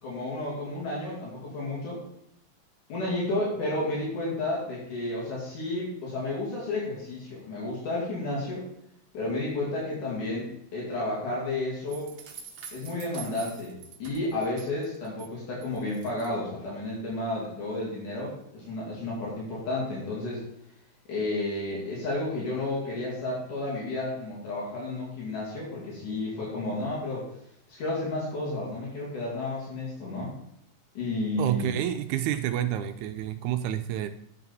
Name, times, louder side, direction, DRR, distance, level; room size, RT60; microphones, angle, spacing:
voice 1, 0.0-2.0 2.9-8.7 9.1-12.1 12.7-20.4 21.1-27.2 27.7-30.3 31.0-31.7, left 2 dB, 80° left, -5 dB, 4.0 m, -32 dB
sound 1, 11.9-15.3 15.6-16.3, right 7 dB, 55° right, 1.7 m, -45 dB
voice 2, 31.4-34.1, right 11 dB, 80° right, 8 dB, 1.9 m, -29 dB
9.3 x 7.1 x 4.1 m, 0.73 s
omnidirectional pair, 3.6 m